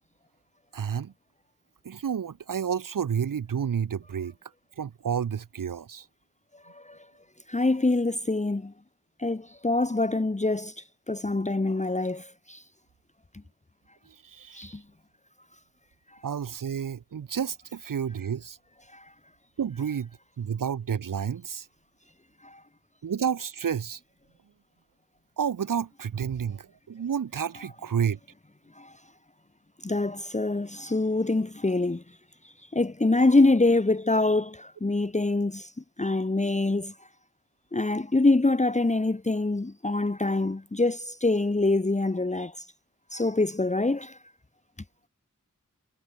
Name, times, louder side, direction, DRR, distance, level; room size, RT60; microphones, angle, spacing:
voice 1, 0.7-1.1 1.8-4.3 4.8-6.1 14.1-14.8 16.2-18.6 19.6-20.1 20.4-21.7 23.0-24.0 25.4-28.2, right 7 dB, 85° right, 0.7 m, -30 dB
voice 2, 6.6-7.0 7.5-8.7 9.2-12.6 14.5-14.8 18.9-19.1 22.4-22.6 28.8-28.9 29.8-32.0 32.7-35.7 36.0-36.9 37.7-42.7 43.1-44.2, left 2 dB, 20° left, 1.0 m, -25 dB
wide cardioid pair, 50°, 32 cm